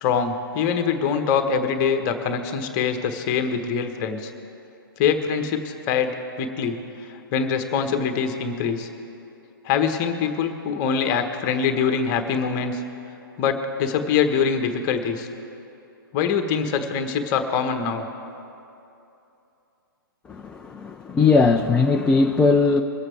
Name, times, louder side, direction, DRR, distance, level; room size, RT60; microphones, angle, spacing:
voice 1, 0.0-4.3 5.0-6.8 7.3-8.9 9.6-12.8 13.4-15.3 16.1-18.1, left 6 dB, 30° left, 7 dB, 1.2 m, -24 dB
voice 2, 20.3-22.8, left 4 dB, 10° left, 2 dB, 0.4 m, -19 dB
22.5 x 8.1 x 4.5 m, 2.8 s
figure-of-eight pair, 120°, 12 cm